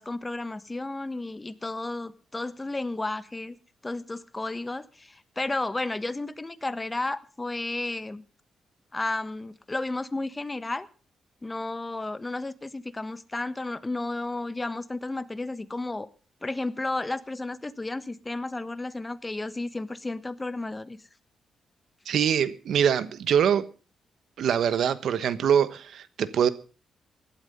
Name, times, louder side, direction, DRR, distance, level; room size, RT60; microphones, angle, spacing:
voice 1, 0.0-3.6 3.8-8.2 8.9-10.9 11.4-16.1 16.4-21.0, left 2 dB, 20° left, 1.3 m, -32 dB
voice 2, 22.1-23.6 24.4-26.5, right 8 dB, 75° right, 1.2 m, -24 dB
17.0 x 12.0 x 5.4 m
cardioid pair, 70°, 0 cm